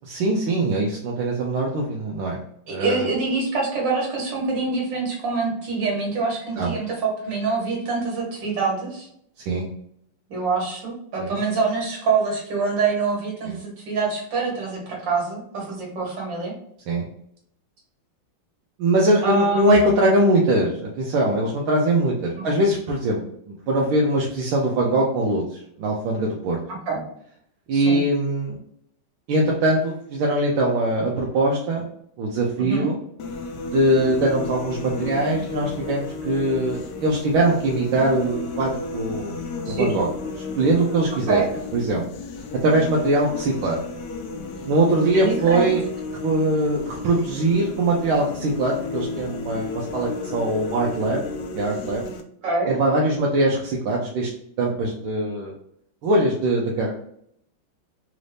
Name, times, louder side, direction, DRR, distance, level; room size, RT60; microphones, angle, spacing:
voice 1, 0.0-2.4 2.7-3.1 6.6-6.7 9.5-9.7 11.2-11.4 13.4-13.6 16.9-17.0 18.8-23.2 23.5-26.6 27.7-28.6 29.3-31.8 32.2-33.0 33.6-39.4 39.7-40.1 40.5-41.4 41.7-42.0 42.6-43.8 44.6-45.8 46.2-51.2 51.5-52.0 52.7-54.3 54.6-55.5 56.0-56.9, right 1 dB, 80° right, -2 dB, 1.5 m, -22 dB
voice 2, 2.7-9.1 10.3-16.5 19.2-19.9 22.4-22.5 26.9-27.0 27.7-28.0 32.6-32.9 39.7-39.9 41.3-41.5 45.1-45.7 52.4-52.8, right 4 dB, 60° right, -2 dB, 2.0 m, -25 dB
sound 1, 33.2-52.2, left 3 dB, 70° left, 1.0 m, -33 dB
4.1 x 2.6 x 3.2 m, 0.70 s
omnidirectional pair, 2.3 m